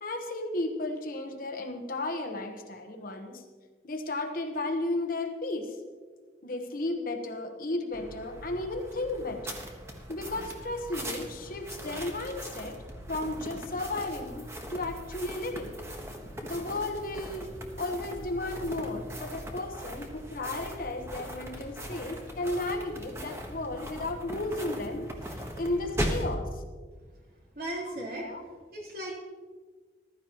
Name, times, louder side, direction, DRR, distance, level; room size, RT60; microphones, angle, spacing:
voice 1, 0.0-3.4 3.8-5.7 6.4-9.6 10.1-12.8 13.1-15.8 16.4-17.5 17.8-26.6 27.9-28.4, left 2 dB, 50° left, 4 dB, 1.1 m, -34 dB
sound 1, 7.9-26.3, equal, 15° right, 1.3 m, -39 dB
voice 2, 27.6-28.3 28.7-29.1, right 1 dB, 55° right, -4 dB, 3.6 m, -36 dB
15.0 x 13.0 x 3.0 m, 1.4 s
head